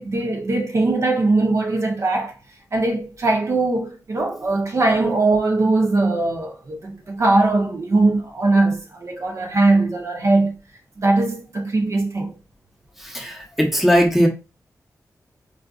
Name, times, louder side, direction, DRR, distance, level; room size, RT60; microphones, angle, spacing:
voice 1, 0.0-2.4 2.7-10.5 11.0-12.4, right 2 dB, 50° right, 0.6 m, -20 dB
voice 2, 13.0-14.3, equal, 5° right, 0.8 m, -19 dB
4.6 x 2.4 x 2.3 m
wide cardioid pair, 125°, 6 cm